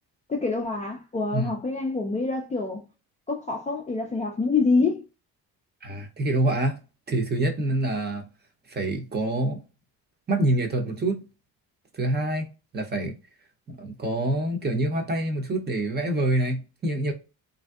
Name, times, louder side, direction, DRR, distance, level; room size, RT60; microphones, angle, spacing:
voice 1, 0.3-2.8 3.3-5.1, left 3 dB, 20° left, 0.4 m, -26 dB
voice 2, 5.8-6.8 7.1-8.3 8.7-9.6 10.3-11.2 11.9-12.5 12.7-13.1 13.7-17.1, right 1 dB, 25° right, 0.6 m, -26 dB
3.2 x 2.6 x 2.3 m
cardioid pair, 145°, 38 cm